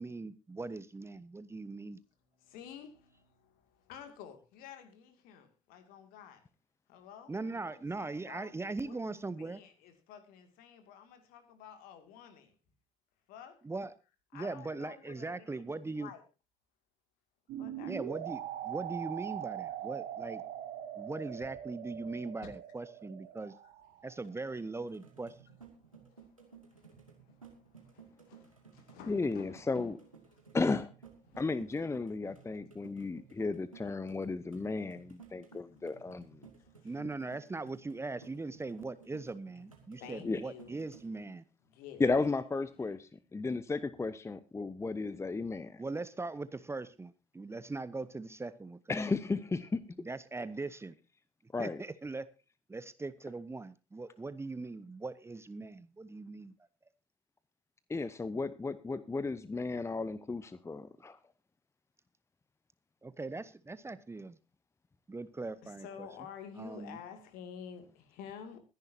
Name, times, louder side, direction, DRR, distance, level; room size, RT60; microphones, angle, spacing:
voice 1, 0.0-2.0 7.3-9.6 13.6-13.9 14.3-16.1 17.9-20.4 21.0-23.5 24.0-25.4 36.8-41.4 45.8-49.2 50.0-51.0 51.6-52.3 52.7-56.5 63.0-64.4 65.1-66.1 66.6-67.0, right 3 dB, 15° right, 0.9 m, -40 dB
voice 2, 2.2-6.5 6.9-7.3 7.6-8.5 8.9-12.6 13.3-13.6 14.3-16.2 17.6-18.2 21.4-21.5 22.4-22.5 23.6-24.1 25.8-30.0 30.3-30.4 31.3-31.4 32.3-32.5 36.6-37.0 40.0-40.7 41.6-42.1 42.8-42.9 65.6-68.6, left 8 dB, 60° left, 2.5 m, -51 dB
sound 1, 17.5-24.3, right 11 dB, 55° right, 1.7 m, -42 dB
sound 2, 24.8-41.2, right 6 dB, 90° right, 2.2 m, -57 dB
voice 3, 29.1-29.9 30.5-30.9 31.4-36.4 40.2-40.4 42.0-45.8 48.9-49.8 51.5-51.8 57.9-61.2, left 3 dB, 15° left, 0.8 m, -34 dB
22.5 x 10.5 x 2.8 m
figure-of-eight pair, 55°, 17 cm